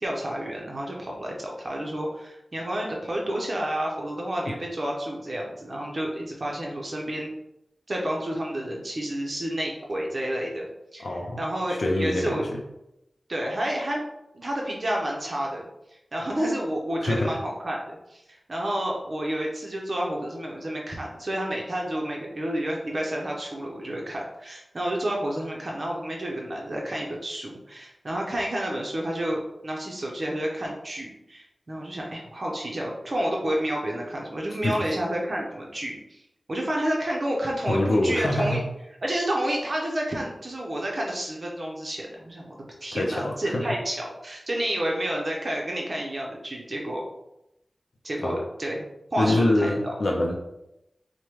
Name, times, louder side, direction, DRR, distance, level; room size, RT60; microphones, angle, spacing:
voice 1, 0.0-7.3 7.9-10.7 10.9-12.4 13.3-14.1 14.3-15.6 16.1-36.2 36.5-38.6 39.0-47.0 48.0-48.8 49.1-49.9, right 1 dB, 55° right, -2 dB, 0.7 m, -30 dB
voice 2, 11.0-11.4 11.7-12.6 17.0-17.4 34.6-34.8 37.7-38.6 42.9-43.6 48.2-48.4 49.2-50.4, left 1 dB, 75° left, 0 dB, 0.4 m, -25 dB
4.7 x 2.1 x 3.0 m, 0.86 s
wide cardioid pair, 60°, 0 cm